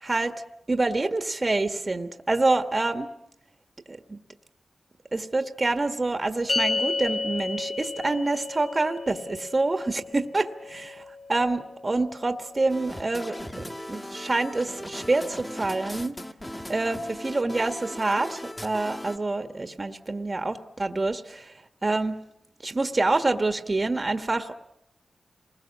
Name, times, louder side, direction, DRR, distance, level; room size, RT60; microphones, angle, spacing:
voice 1, 0.0-0.4 0.7-3.1 3.9-4.2 5.1-16.1 16.7-21.5 21.8-22.2 22.6-24.5, right 2 dB, 35° right, 8 dB, 1.4 m, -27 dB
sound 1, 6.5-13.0, left 3 dB, 45° left, 1.6 m, -33 dB
sound 2, 12.7-19.2, left 1 dB, 20° left, 1.8 m, -38 dB
28.0 x 20.5 x 7.3 m, 0.82 s
cardioid pair, 70°, 0 cm